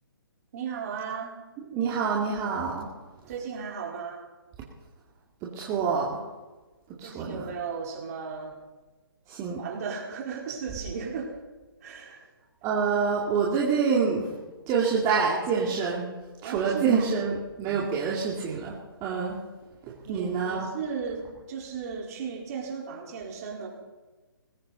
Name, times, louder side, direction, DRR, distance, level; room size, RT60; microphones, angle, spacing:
voice 1, 0.5-1.4 3.3-4.2 7.0-8.6 9.6-11.4 11.8-12.2 16.4-17.1 20.0-23.7, right 6 dB, 40° right, 0 dB, 4.3 m, -35 dB
voice 2, 1.7-2.9 5.4-6.2 7.0-7.5 9.3-9.6 12.6-14.4 14.7-16.1 16.4-18.7 19.0-19.4 19.9-20.7, right 5 dB, 25° right, -4 dB, 2.3 m, -27 dB
20.0 x 16.5 x 4.1 m, 1.2 s
hypercardioid pair, 145°, 12 cm